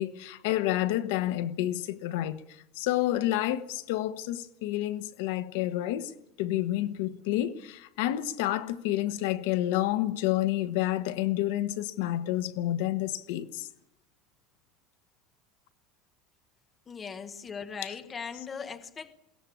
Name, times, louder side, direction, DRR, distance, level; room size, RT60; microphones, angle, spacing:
voice 1, 0.0-2.4 2.8-13.7 17.8-17.9, left 14 dB, 70° left, 1.2 m, -29 dB
voice 2, 16.9-19.1, left 6 dB, 15° left, 1.1 m, -39 dB
22.0 x 17.5 x 8.5 m
cardioid pair, 180°, 0 cm